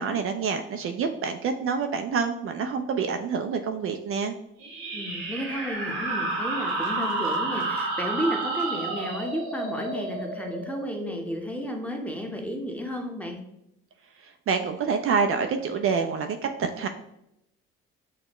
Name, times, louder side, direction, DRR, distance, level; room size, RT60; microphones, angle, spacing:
voice 1, 0.0-4.3 14.2-16.9, right 5 dB, 50° right, 6 dB, 0.4 m, -27 dB
sound 1, 4.6-11.8, right 3 dB, 90° right, 1.5 m, -31 dB
voice 2, 4.9-13.4, equal, 5° left, 2 dB, 0.9 m, -32 dB
6.2 x 2.1 x 3.0 m, 0.82 s
hypercardioid pair, 60°, 29 cm